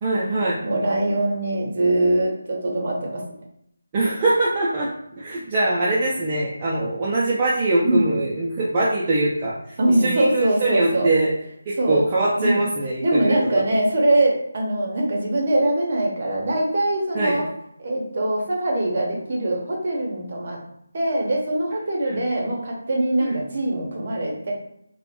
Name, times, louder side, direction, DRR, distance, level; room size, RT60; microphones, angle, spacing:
voice 1, 0.0-0.6 3.9-11.3 11.7-13.4 17.1-17.4 22.0-22.2 23.2-23.4, right 2 dB, 20° right, -7 dB, 0.3 m, -23 dB
voice 2, 0.6-3.2 7.8-8.0 9.8-11.1 11.8-12.0 12.4-12.6 13.0-17.4 17.8-20.6 20.9-24.5, right 1 dB, 40° right, -1 dB, 0.7 m, -22 dB
2.8 x 2.1 x 2.5 m, 0.74 s
figure-of-eight pair, 170°, 0 cm